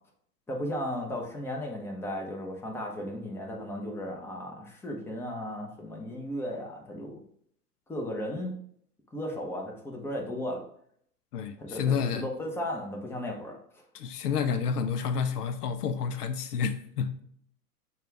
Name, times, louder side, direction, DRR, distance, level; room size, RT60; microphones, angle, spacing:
voice 1, 0.5-7.2 7.9-8.5 9.1-10.6 11.6-13.6, left 1 dB, 5° left, 0.7 m, -35 dB
voice 2, 11.3-12.3 13.9-17.2, left 6 dB, 75° left, 0.6 m, -29 dB
6.6 x 2.4 x 3.3 m
hypercardioid pair, 95°, 47 cm